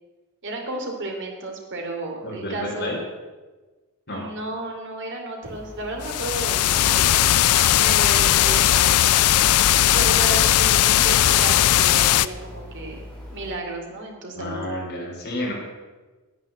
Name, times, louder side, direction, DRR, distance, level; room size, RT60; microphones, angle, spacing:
voice 1, 0.4-2.9 4.1-7.0 7.8-9.0 9.9-13.0 13.3-14.6, right 2 dB, 55° right, 1 dB, 2.7 m, -33 dB
voice 2, 2.2-3.0 4.1-4.2 6.7-6.9 14.3-15.5, left 1 dB, 50° left, -2 dB, 4.0 m, -30 dB
sound 1, 5.4-13.5, left 1 dB, 5° left, 3.2 m, -40 dB
sound 2, 6.0-12.3, left 12 dB, 90° left, 0.4 m, -18 dB
9.7 x 9.6 x 7.3 m, 1.3 s
head